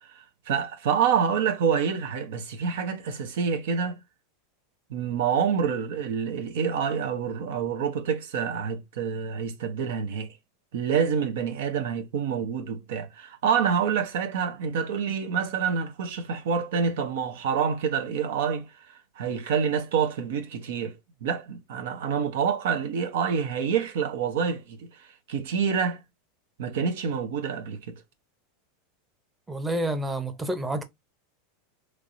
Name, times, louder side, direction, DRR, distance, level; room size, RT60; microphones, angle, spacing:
voice 1, 0.0-4.0 4.9-10.3 10.7-18.7 19.2-26.0 26.6-27.9, right 7 dB, 75° right, 0.8 m, -27 dB
voice 2, 29.5-30.8, right 1 dB, 10° right, 0.7 m, -29 dB
3.3 x 3.1 x 2.6 m
supercardioid pair, 120°, 0 cm